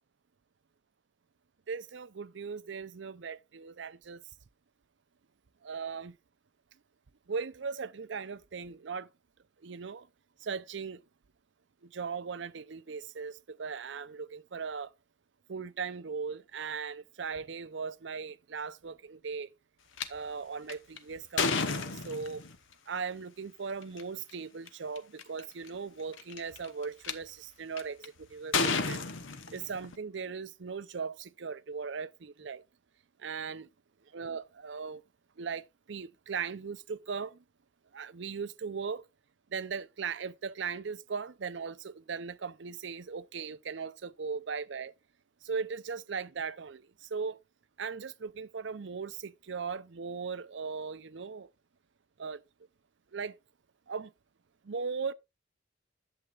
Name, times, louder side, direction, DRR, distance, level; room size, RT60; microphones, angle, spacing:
voice 1, 1.7-4.2 5.6-6.2 7.3-9.1 9.6-10.1 10.4-11.0 11.8-14.9 15.5-19.5 20.1-22.5 22.9-29.0 29.5-32.6 33.2-33.7 34.1-35.0 35.4-37.4 37.9-39.0 39.5-44.9 45.4-47.4 47.8-51.5 52.2-52.4 53.1-53.4 53.9-54.1 54.6-55.1, right 5 dB, 65° right, 0.5 m, -38 dB
sound 1, 20.0-20.1 20.7-22.6 23.8-24.0 24.7-24.8 25.0-25.4 26.1-27.1 27.8-28.1 28.5-30.0, left 4 dB, 80° left, 1.1 m, -31 dB
11.0 x 7.8 x 2.4 m
head